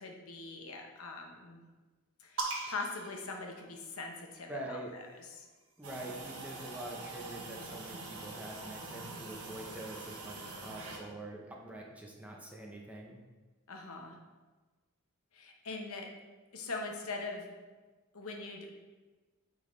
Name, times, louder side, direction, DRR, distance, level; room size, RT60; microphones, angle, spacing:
voice 1, 0.0-1.6 2.2-5.5 13.7-14.2 15.3-16.1 16.5-17.5 18.1-18.7, left 3 dB, 70° left, 1 dB, 0.9 m, -42 dB
sound 1, 2.4-4.2 5.3-6.9, right 3 dB, 60° right, 1.2 m, -42 dB
voice 2, 4.5-5.0 5.8-13.2, right 1 dB, 5° right, -1 dB, 0.7 m, -45 dB
sound 2, 5.8-11.0, right 3 dB, 80° right, 1.0 m, -45 dB
8.8 x 3.9 x 3.1 m, 1.3 s
head